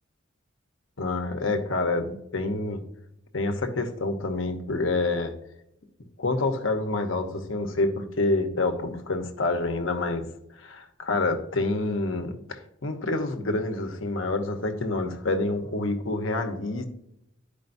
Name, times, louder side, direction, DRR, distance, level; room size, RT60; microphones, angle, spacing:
voice 1, 1.0-2.8 3.3-5.3 6.2-10.3 10.6-16.8, left 2 dB, 80° left, 6 dB, 1.0 m, -27 dB
12.0 x 5.1 x 2.6 m, 0.80 s
head